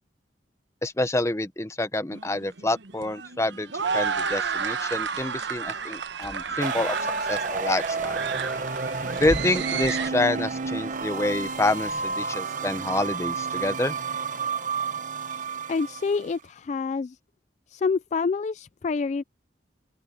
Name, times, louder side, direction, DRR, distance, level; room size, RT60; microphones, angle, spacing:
voice 1, 0.8-7.0 7.3-8.2 9.2-14.0, left 2 dB, 15° left, 0.8 m, -27 dB
sound 1, 2.1-10.1, right 6 dB, 80° right, 1.1 m, -31 dB
Car / Engine, 3.8-12.1, equal, 60° left, 2.8 m, -45 dB
sound 2, 6.6-16.3, right 4 dB, 45° right, 1.1 m, -30 dB
voice 2, 15.7-17.2 17.7-19.2, left 4 dB, 40° left, 0.3 m, -27 dB
open air
head